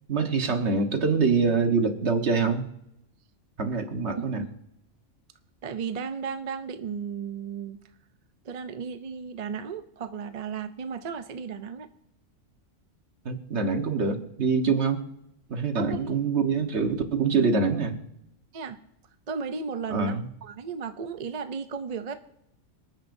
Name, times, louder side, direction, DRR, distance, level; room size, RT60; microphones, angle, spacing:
voice 1, 0.1-2.7 3.6-4.4 13.2-15.0 15.5-18.0 19.9-20.3, right 4 dB, 60° right, 5 dB, 1.6 m, -25 dB
voice 2, 4.2-4.5 5.6-7.8 8.4-11.9 15.8-16.1 18.5-18.8 19.3-22.1, right 6 dB, 45° right, 9 dB, 0.5 m, -34 dB
27.0 x 9.3 x 2.6 m, 0.82 s
omnidirectional pair, 1.3 m